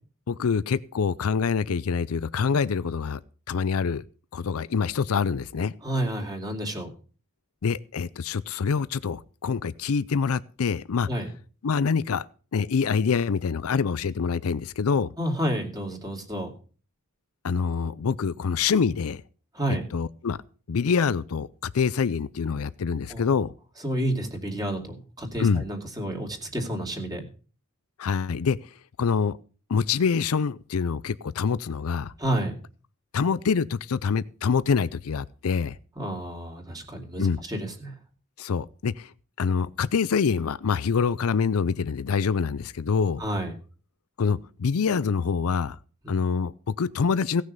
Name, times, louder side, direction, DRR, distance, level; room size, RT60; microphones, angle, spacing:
voice 1, 0.3-3.2 3.5-4.0 4.3-5.7 7.6-11.1 11.6-12.3 12.5-15.1 17.4-19.2 19.9-20.4 20.7-23.5 25.4-25.6 28.0-28.6 29.0-29.4 29.7-32.1 33.1-35.8 37.2-37.4 38.4-39.1 39.4-43.2 44.2-45.8 46.1-47.4, left 5 dB, 75° left, 0.5 m, -25 dB
voice 2, 5.8-6.9 11.1-11.3 15.2-16.5 19.5-19.8 23.1-23.3 23.8-27.3 32.2-32.5 36.0-38.0 43.2-43.6 46.0-46.2, right 1 dB, 20° right, 2.7 m, -30 dB
17.0 x 6.5 x 6.6 m
head